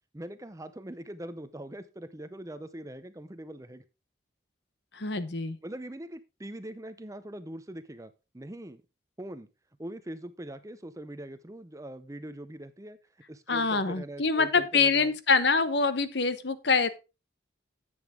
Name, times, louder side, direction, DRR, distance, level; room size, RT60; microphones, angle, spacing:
voice 1, 0.1-3.8 5.6-8.8 9.2-9.5 9.8-13.0 13.3-15.1, right 1 dB, 15° right, 12 dB, 0.6 m, -42 dB
voice 2, 4.9-5.6 13.5-16.9, left 4 dB, 60° left, 13 dB, 1.0 m, -25 dB
10.5 x 7.9 x 3.7 m, 0.29 s
head